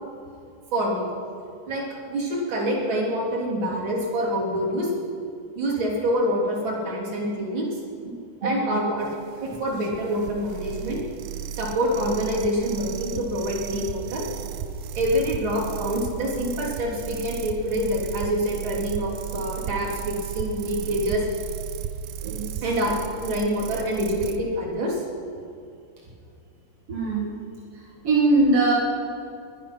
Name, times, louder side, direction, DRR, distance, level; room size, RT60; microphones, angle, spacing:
voice 1, 0.7-1.1 1.6-4.9 5.5-7.8 8.4-9.1 9.4-11.0 11.5-14.2 14.9-21.2 22.6-22.9 23.2-25.0, equal, 30° right, -4 dB, 3.0 m, -26 dB
voice 2, 8.4-8.8 22.2-22.6 26.9-27.4 27.7-28.7, right 2 dB, 55° right, -4 dB, 1.7 m, -22 dB
sound 1, 9.0-24.4, right 9 dB, 80° right, 2.3 m, -35 dB
21.5 x 11.0 x 5.7 m, 2.5 s
omnidirectional pair, 5.4 m